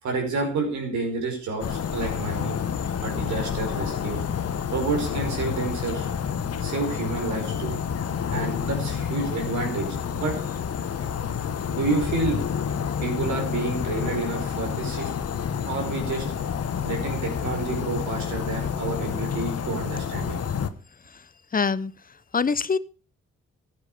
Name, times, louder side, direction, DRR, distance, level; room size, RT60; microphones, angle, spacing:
voice 1, 0.0-2.6 3.0-4.2 4.7-6.1 6.6-7.8 8.3-10.3 11.7-12.4 13.0-15.1 15.7-16.3 16.8-20.4, right 3 dB, 70° right, 2 dB, 5.3 m, -29 dB
sound 1, 1.6-20.7, left 7 dB, 55° left, 1.3 m, -29 dB
voice 2, 21.5-21.9 22.3-22.8, left 5 dB, 30° left, 18 dB, 0.9 m, -24 dB
15.0 x 9.3 x 5.1 m, 0.37 s
hypercardioid pair, 40°, 30 cm